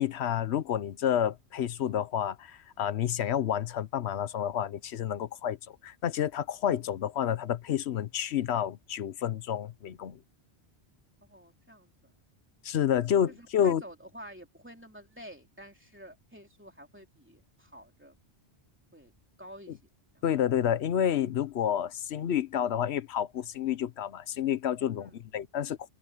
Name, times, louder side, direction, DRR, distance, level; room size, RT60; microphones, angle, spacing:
voice 1, 0.0-10.2 12.6-13.8 20.2-25.9, left 9 dB, 80° left, 1.0 m, -29 dB
voice 2, 11.2-12.1 13.3-18.2 18.9-19.1 19.4-19.8 20.1-20.2 25.0-25.2, right 1 dB, 10° right, 3.3 m, -49 dB
omnidirectional pair, 1.1 m